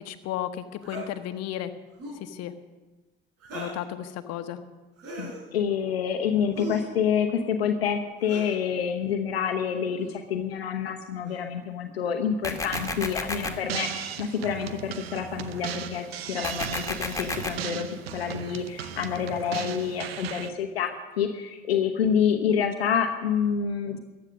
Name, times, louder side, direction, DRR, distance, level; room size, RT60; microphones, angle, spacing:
voice 1, 0.1-1.7 2.2-2.5 3.5-4.6, left 12 dB, 60° left, 9 dB, 1.1 m, -34 dB
sound 1, 0.8-1.1 1.9-2.3 3.4-3.9 5.0-5.4 6.5-7.0 8.2-8.6 9.9-10.2 11.2-11.5 12.4-12.9 14.6-14.7 15.8-15.9 16.6-16.8 17.6-17.8 19.3-19.7, right 2 dB, 55° right, 4.5 m, -40 dB
voice 2, 5.2-24.0, left 7 dB, 85° left, 5 dB, 0.9 m, -28 dB
sound 2, 12.4-13.5 16.4-17.5, left 2 dB, 10° left, 2.0 m, -31 dB
sound 3, 12.7-20.5, right 9 dB, 85° right, 0.8 m, -37 dB
15.0 x 10.5 x 6.4 m, 1.2 s
hypercardioid pair, 55°, 30 cm